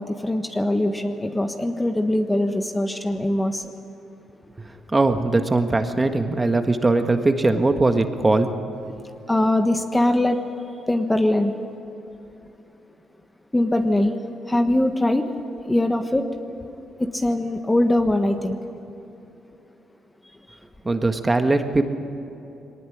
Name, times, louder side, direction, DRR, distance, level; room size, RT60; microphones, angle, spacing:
voice 1, 0.0-3.7 9.3-10.4 10.9-11.6 13.5-14.1 14.5-15.4 15.6-16.3 17.1-18.6 20.5-20.6, left 1 dB, 10° left, 7 dB, 1.3 m, -22 dB
voice 2, 4.9-8.5 8.9-9.0 20.8-21.8, right 2 dB, 20° right, 7 dB, 1.6 m, -20 dB
21.5 x 19.0 x 10.0 m, 2.9 s
cardioid pair, 90°, 0 cm